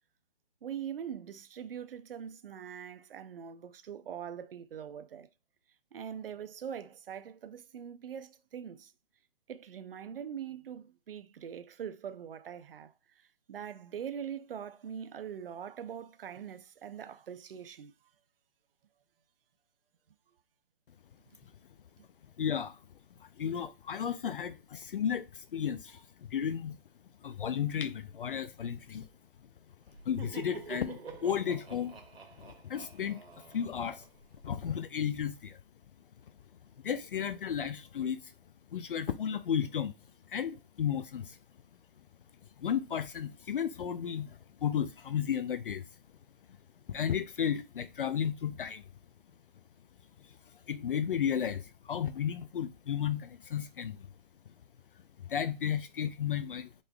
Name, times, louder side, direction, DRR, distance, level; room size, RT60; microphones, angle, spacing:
voice 1, 0.6-5.3 5.9-8.9 9.5-12.9 13.5-17.9, right 8 dB, 65° right, 0.5 m, -42 dB
voice 2, 22.4-22.8 23.2-26.0 26.3-26.8 27.2-29.1 30.1-31.9 32.4-33.2 33.5-34.0 34.4-35.6 36.8-38.3 38.7-39.9 40.3-41.4 42.6-45.8 46.9-48.8 50.7-54.1 55.3-56.7, left 8 dB, 65° left, 0.5 m, -33 dB
Laughter, 29.9-34.6, right 4 dB, 85° right, 1.2 m, -47 dB
3.8 x 3.3 x 2.3 m
figure-of-eight pair, 145°, 30 cm